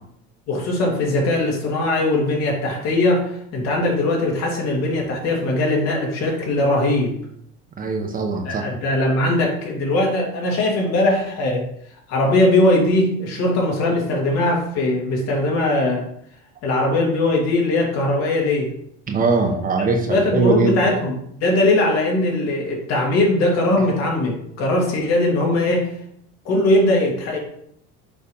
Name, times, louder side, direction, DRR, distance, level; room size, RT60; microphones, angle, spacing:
voice 1, 0.5-7.2 8.4-11.6 12.1-16.1 16.6-18.7 20.1-21.1 21.4-25.9 26.4-27.4, left 1 dB, 60° left, -1 dB, 2.4 m, -20 dB
voice 2, 7.8-8.6 19.1-20.8, right 3 dB, 30° right, 3 dB, 0.9 m, -21 dB
6.8 x 3.3 x 5.5 m, 0.71 s
cardioid pair, 140°, 30 cm